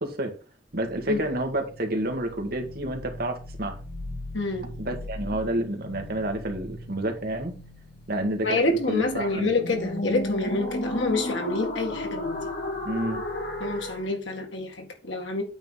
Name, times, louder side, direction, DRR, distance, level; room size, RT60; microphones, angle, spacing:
voice 1, 0.0-0.4 0.7-3.8 4.8-7.5 8.1-9.5 12.8-13.2, right 1 dB, 55° right, 1.6 m, -29 dB
sound 1, 0.9-14.1, left 1 dB, 60° left, 2.2 m, -35 dB
voice 2, 4.3-4.7 8.4-12.4 13.6-15.4, left 2 dB, 85° left, 2.0 m, -27 dB
8.9 x 3.8 x 5.5 m
head